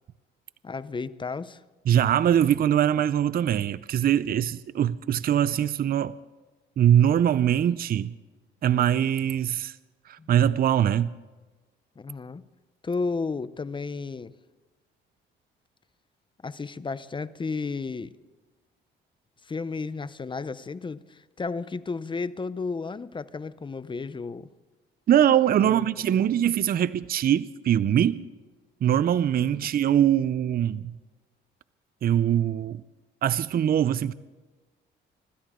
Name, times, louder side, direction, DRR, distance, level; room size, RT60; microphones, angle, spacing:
voice 1, 0.6-1.6 10.2-10.3 12.0-12.4 12.8-14.3 16.4-18.1 19.4-24.5 25.6-25.9 26.1-26.4 29.6-29.7, left 4 dB, 25° left, 0.7 m, -33 dB
voice 2, 1.9-6.1 6.8-8.1 8.6-9.8 10.1-11.1 25.1-28.2 28.8-30.9 32.0-32.8 33.2-34.1, right 10 dB, 50° right, 0.5 m, -22 dB
25.5 x 13.0 x 3.7 m
cardioid pair, 90°, 20 cm